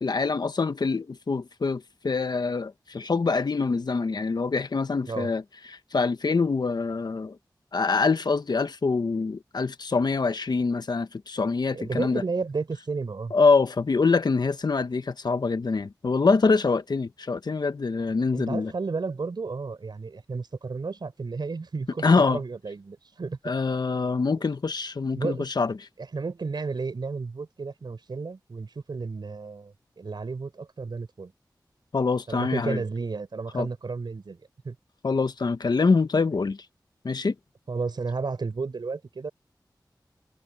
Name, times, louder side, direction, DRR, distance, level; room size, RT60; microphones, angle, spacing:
voice 1, 0.0-5.4 5.7-7.4 7.7-12.2 13.3-18.7 22.0-22.4 23.4-25.7 31.9-32.8 33.5-33.7 35.0-36.6 37.0-37.3, left 4 dB, 65° left, 1.1 m, -25 dB
voice 2, 11.7-13.3 18.3-23.4 25.2-25.5 26.1-31.3 32.3-34.4 34.6-34.8 37.7-39.3, right 4 dB, 75° right, 4.3 m, -32 dB
wide cardioid pair, 75°, 8 cm